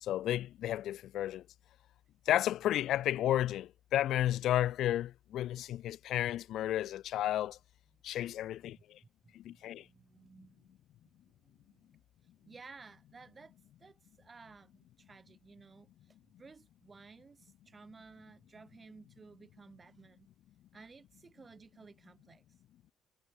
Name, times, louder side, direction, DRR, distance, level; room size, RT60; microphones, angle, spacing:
voice 1, 0.0-1.4 2.3-7.6 8.0-9.0 9.3-9.8, left 12 dB, 80° left, 1.0 m, -32 dB
voice 2, 8.4-8.8 9.2-12.0 12.4-20.3 20.7-22.4, right 4 dB, 35° right, 4.0 m, -57 dB
cardioid pair, 90°, 0 cm